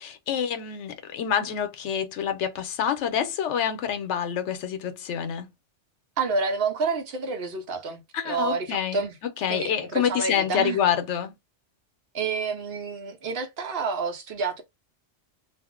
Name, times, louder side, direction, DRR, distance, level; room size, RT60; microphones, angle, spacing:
voice 1, 0.0-5.5 8.1-11.3, left 8 dB, 90° left, 0.9 m, -27 dB
voice 2, 6.2-9.2 9.5-10.8 12.1-14.6, right 4 dB, 60° right, 0.9 m, -29 dB
2.5 x 2.0 x 3.6 m
omnidirectional pair, 1.2 m